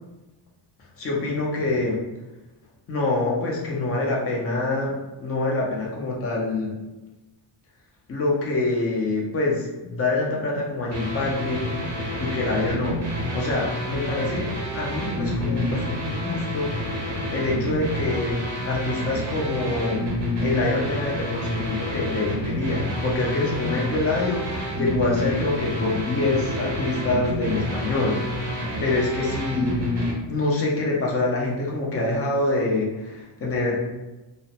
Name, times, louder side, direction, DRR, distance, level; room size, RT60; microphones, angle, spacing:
voice 1, 1.0-2.0 2.9-6.7 8.1-11.8 12.2-13.0 13.3-16.7 17.3-20.1 20.4-28.4 28.8-29.9 30.3-33.7, left 2 dB, 30° left, -3 dB, 0.5 m, -25 dB
sound 1, 10.9-30.1, left 1 dB, 35° right, 0.6 m, -29 dB
2.4 x 2.0 x 2.8 m, 1.1 s
cardioid pair, 150°, 49 cm